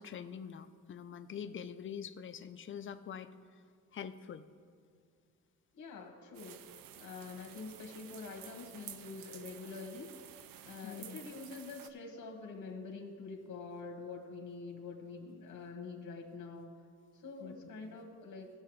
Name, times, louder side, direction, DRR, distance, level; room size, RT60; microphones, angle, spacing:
voice 1, 0.0-3.3 3.9-4.4 10.8-11.2 17.4-17.6 17.8-18.0, left 8 dB, 40° left, 11 dB, 0.5 m, -45 dB
voice 2, 5.7-6.6 7.0-10.1 10.6-16.7 17.1-18.5, left 4 dB, 60° left, 2 dB, 1.3 m, -46 dB
sound 1, 6.3-11.9, right 10 dB, 85° right, 0.6 m, -52 dB
17.5 x 6.8 x 3.2 m, 2.1 s
cardioid pair, 115°, 33 cm